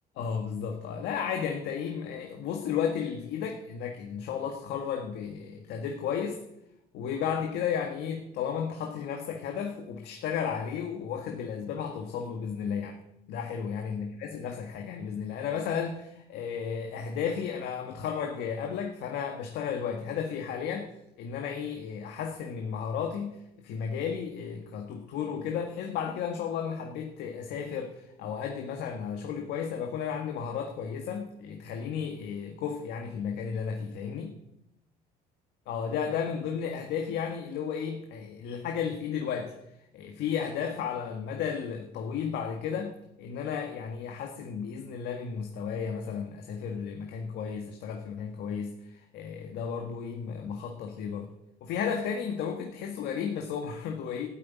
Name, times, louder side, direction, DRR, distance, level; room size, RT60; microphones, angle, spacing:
voice 1, 0.2-6.4 6.9-13.0 13.3-20.9 21.2-34.3 35.7-39.5 39.9-42.9 43.2-51.3 51.6-54.3, left 7 dB, 80° left, 3 dB, 1.7 m, -33 dB
13.5 x 8.8 x 9.4 m, 0.85 s
cardioid pair, 110°, 17 cm